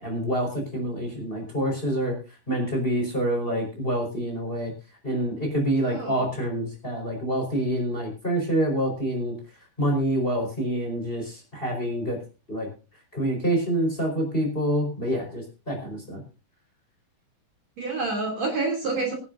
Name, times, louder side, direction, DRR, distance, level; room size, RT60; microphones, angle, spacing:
voice 1, 0.0-2.1 2.5-4.7 5.0-9.3 9.8-12.2 12.5-12.7 13.1-16.2, right 1 dB, 15° left, 1 dB, 4.8 m, -27 dB
voice 2, 5.9-6.2 17.8-19.1, right 3 dB, 45° right, 0 dB, 3.9 m, -28 dB
24.0 x 9.7 x 2.7 m, 0.32 s
omnidirectional pair, 4.6 m